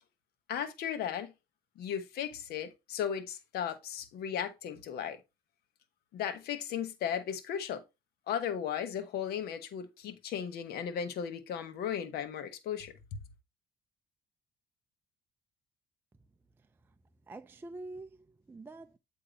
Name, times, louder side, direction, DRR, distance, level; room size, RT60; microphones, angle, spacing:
voice 1, 0.5-1.3 1.8-5.2 6.1-7.8 8.3-13.2, left 8 dB, 70° left, 1.0 m, -36 dB
voice 2, 17.3-19.0, right 2 dB, 15° right, 0.4 m, -46 dB
7.8 x 2.7 x 5.0 m
cardioid pair, 110°, 17 cm